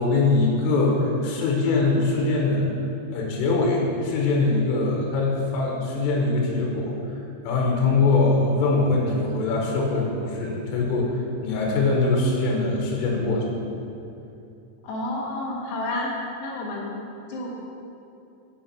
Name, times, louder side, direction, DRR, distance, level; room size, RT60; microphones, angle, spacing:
voice 1, 0.0-2.7 3.1-7.0 7.5-11.1 11.4-13.5, left 3 dB, 90° left, -1 dB, 3.7 m, -22 dB
voice 2, 14.8-16.1 16.4-16.9 17.3-17.6, left 2 dB, 70° left, -3 dB, 3.3 m, -30 dB
8.6 x 6.2 x 5.8 m, 2.7 s
omnidirectional pair, 5.7 m